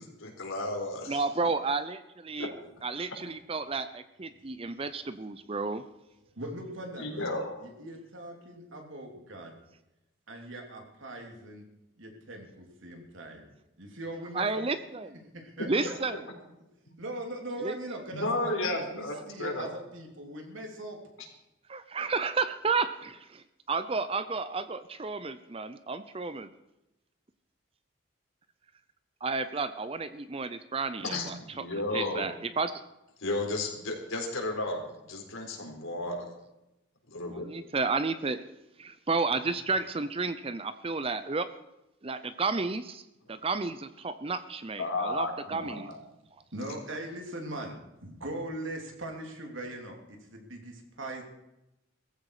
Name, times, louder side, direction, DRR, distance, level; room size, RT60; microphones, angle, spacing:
voice 1, 0.0-1.2 2.4-2.5 7.0-7.6 15.8-15.9 18.1-19.7 31.0-32.3 33.2-34.8 35.1-36.3 37.1-37.5 43.3-43.4 44.8-46.0, left 2 dB, 80° left, 2 dB, 4.0 m, -33 dB
voice 2, 1.1-2.5 2.8-5.8 14.3-15.2 15.7-16.2 17.6-17.8 21.7-26.5 29.2-31.3 31.9-32.7 37.4-38.4 38.8-41.5 42.0-43.0 43.3-45.9, right 4 dB, 25° right, 12 dB, 0.5 m, -32 dB
voice 3, 4.6-5.0 6.4-7.4 7.6-9.5 10.3-11.6 12.0-13.4 13.8-14.6 15.3-15.9 17.0-21.0 46.5-47.8 48.0-51.2, right 1 dB, 70° right, 2 dB, 3.3 m, -40 dB
18.0 x 15.0 x 4.9 m, 0.92 s
head